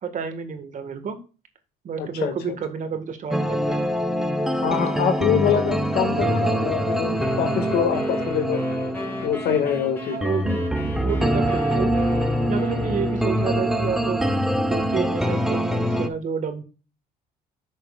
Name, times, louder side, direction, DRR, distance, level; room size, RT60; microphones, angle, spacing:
voice 1, 0.0-1.2 1.8-3.8 10.1-10.6 11.0-11.9 12.4-14.2 14.7-16.6, right 6 dB, 50° right, 7 dB, 1.7 m, -29 dB
voice 2, 2.0-2.6 4.6-8.6 9.2-10.2, left 8 dB, 75° left, 6 dB, 2.0 m, -24 dB
sound 1, 3.3-16.1, equal, ahead, 1.0 m, -24 dB
sound 2, 7.2-14.3, left 1 dB, 15° left, 2.5 m, -37 dB
10.0 x 6.5 x 2.4 m, 0.34 s
cardioid pair, 110°, 17 cm